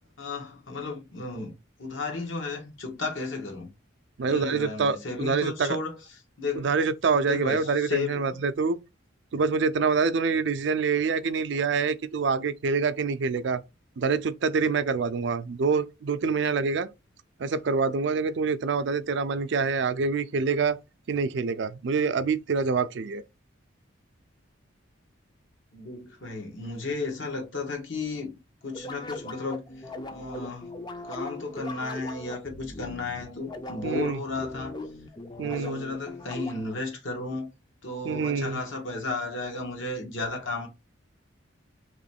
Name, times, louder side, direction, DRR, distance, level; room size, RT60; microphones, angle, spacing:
voice 1, 0.2-1.5 1.8-3.7 4.2-6.0 6.4-6.7 7.1-8.4 25.7-28.3 28.6-30.7 31.0-34.7 35.4-37.5 37.8-40.7, left 3 dB, 75° left, 1.3 m, -34 dB
voice 2, 4.2-5.8 6.6-8.8 9.3-13.6 14.0-16.9 17.4-20.8 21.1-23.2 33.8-34.2 35.4-35.8 38.0-38.6, right 5 dB, 60° right, 0.4 m, -26 dB
sound 1, 28.7-36.8, left 1 dB, 20° left, 0.4 m, -40 dB
3.1 x 3.0 x 4.2 m
head